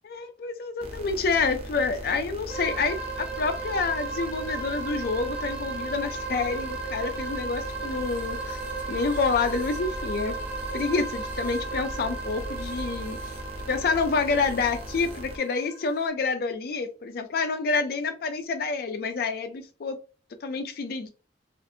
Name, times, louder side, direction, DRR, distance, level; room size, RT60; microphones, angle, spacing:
voice 1, 0.1-8.6 8.9-10.4 10.7-13.4 13.7-20.0 20.4-21.1, left 4 dB, 55° left, 7 dB, 0.4 m, -28 dB
sound 1, 0.8-15.4, equal, 35° right, 0.5 m, -39 dB
sound 2, 2.5-16.1, right 4 dB, 10° right, 0.8 m, -36 dB
2.6 x 2.5 x 2.5 m, 0.34 s
head